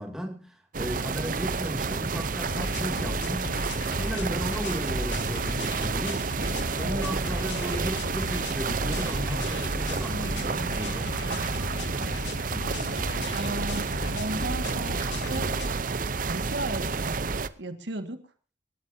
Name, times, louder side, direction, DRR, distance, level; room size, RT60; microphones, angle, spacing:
voice 1, 0.0-3.5 3.9-6.3 6.6-11.4, equal, 5° right, 2.6 m, -35 dB
sound 1, 0.7-17.5, right 4 dB, 45° right, 0.7 m, -30 dB
sound 2, 2.4-15.7, left 1 dB, 75° left, 1.8 m, -35 dB
voice 2, 6.8-7.1 13.3-15.5 16.3-17.3 17.6-18.2, right 1 dB, 70° right, 1.8 m, -35 dB
26.0 x 13.0 x 2.8 m
head